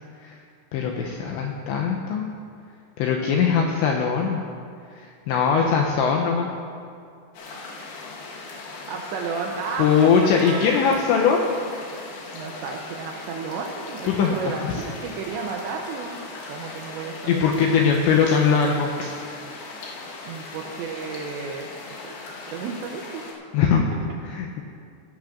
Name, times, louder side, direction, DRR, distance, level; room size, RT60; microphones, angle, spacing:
voice 1, 0.7-2.3 3.0-4.4 5.3-6.5 9.8-11.5 14.0-14.3 14.6-14.8 17.3-19.2 23.5-23.8 24.2-24.6, left 6 dB, 90° left, 0 dB, 2.6 m, -21 dB
sound 1, 7.3-23.3, left 3 dB, 65° left, 2.8 m, -39 dB
voice 2, 8.9-11.3 12.3-16.2 16.5-17.5 20.3-21.7 22.0-22.1 22.5-23.2, right 5 dB, 85° right, 1 dB, 2.6 m, -32 dB
18.0 x 11.5 x 2.5 m, 2.3 s
omnidirectional pair, 5.8 m